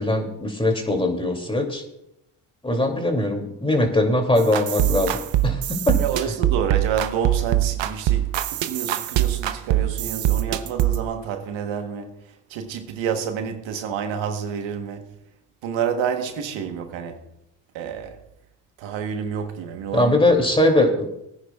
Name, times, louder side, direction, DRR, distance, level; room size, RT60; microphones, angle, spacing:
voice 1, 0.0-1.8 2.6-6.0 19.9-21.1, left 1 dB, 10° left, 2.6 m, -21 dB
sound 1, 4.4-11.0, right 13 dB, 75° right, 0.8 m, -23 dB
voice 2, 6.0-12.2 12.5-15.1 15.6-17.2 17.7-18.2 18.8-20.2, right 7 dB, 90° right, 1.2 m, -29 dB
21.5 x 9.8 x 2.3 m
cardioid pair, 75°, 45 cm